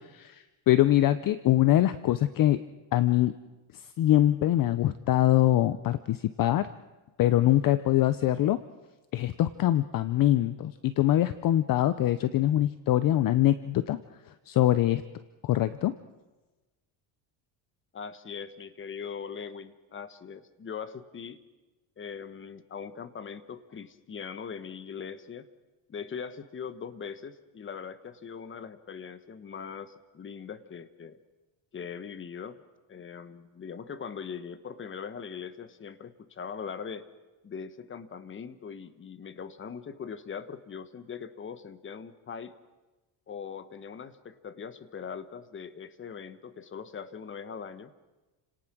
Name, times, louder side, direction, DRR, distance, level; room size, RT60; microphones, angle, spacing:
voice 1, 0.1-2.6 2.9-3.3 4.0-6.7 7.2-8.6 9.1-14.0 14.5-15.0 15.4-15.9, left 13 dB, 45° left, 14 dB, 0.7 m, -23 dB
voice 2, 17.9-21.4 22.0-25.5 25.9-31.2 31.7-32.6 32.9-37.1 37.4-42.5 43.3-47.9, left 6 dB, 25° left, 13 dB, 1.2 m, -41 dB
30.0 x 18.0 x 6.2 m, 1.2 s
cardioid pair, 130°, 47 cm